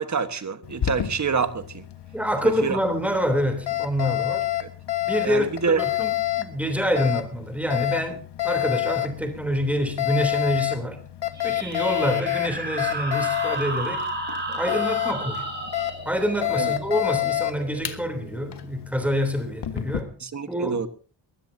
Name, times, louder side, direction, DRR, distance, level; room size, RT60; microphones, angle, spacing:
voice 1, 0.0-1.8 2.6-2.8 4.6-4.7 5.2-5.8 16.6-16.7 20.2-20.9, right 5 dB, 40° right, 1.4 m, -26 dB
Alarm, 0.6-20.0, left 14 dB, 65° left, 1.6 m, -29 dB
voice 2, 2.1-4.5 5.1-11.0 11.4-14.1 14.5-15.5 16.0-20.1 20.5-20.8, equal, 5° right, 3.2 m, -26 dB
sound 1, 11.3-18.6, right 2 dB, 25° right, 4.8 m, -33 dB
21.5 x 16.0 x 2.8 m
wide cardioid pair, 135°, 44 cm